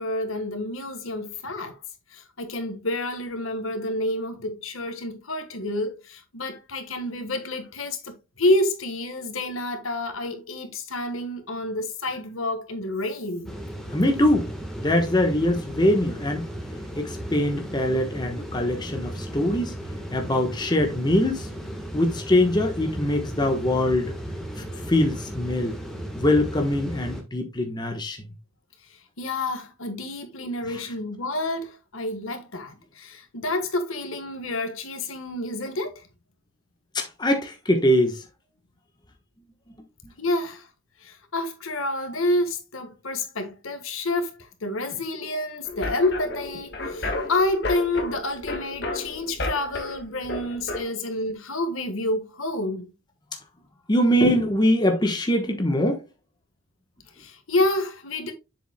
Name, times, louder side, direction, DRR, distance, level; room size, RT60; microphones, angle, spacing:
voice 1, 0.0-1.8 2.1-13.5 29.2-36.0 40.2-40.7 41.0-52.9 57.2-58.3, left 2 dB, 80° left, 1.5 m, -28 dB
sound 1, 13.5-27.2, equal, ahead, 1.3 m, -35 dB
voice 2, 13.9-14.5 14.8-16.5 17.0-19.8 20.1-21.5 21.9-24.1 24.6-25.8 26.1-28.2 30.7-30.8 36.9-38.2 40.0-40.1 53.9-56.0, left 1 dB, 20° left, 1.0 m, -23 dB
sound 2, 45.7-50.8, left 2 dB, 50° left, 1.6 m, -32 dB
7.3 x 6.9 x 2.2 m
head